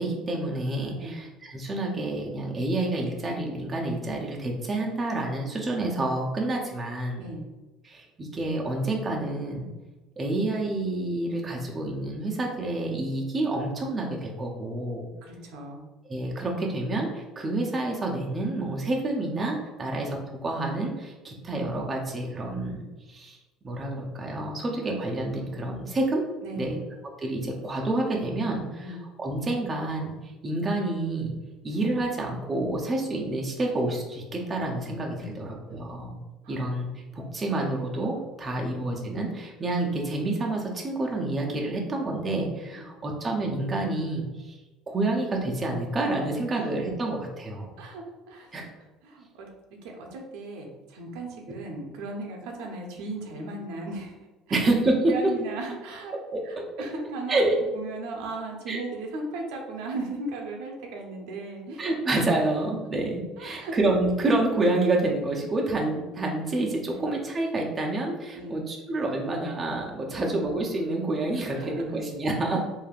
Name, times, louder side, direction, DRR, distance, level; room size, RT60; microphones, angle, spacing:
voice 1, 0.0-7.3 7.8-9.7 10.2-15.1 16.1-23.4 23.6-26.2 26.6-26.8 27.2-31.3 31.6-36.2 36.5-36.9 37.1-44.6 44.9-47.7 48.5-48.7 54.5-55.3 56.3-56.9 57.3-57.5 58.7-58.8 61.8-72.6, right 2 dB, 25° right, -1 dB, 0.5 m, -28 dB
voice 2, 15.2-15.8 19.8-19.9 26.4-26.8 28.8-29.0 35.1-35.8 36.4-36.6 42.7-42.9 46.5-46.6 47.8-48.7 49.0-49.5 49.8-54.2 54.5-54.6 55.1-56.1 56.4-57.4 57.7-61.9 63.4-63.8 66.8-67.1 68.3-68.6 71.5-72.0, right 2 dB, 80° right, 1 dB, 0.6 m, -37 dB
3.3 x 2.6 x 2.3 m, 1.1 s
cardioid pair, 125°, 0 cm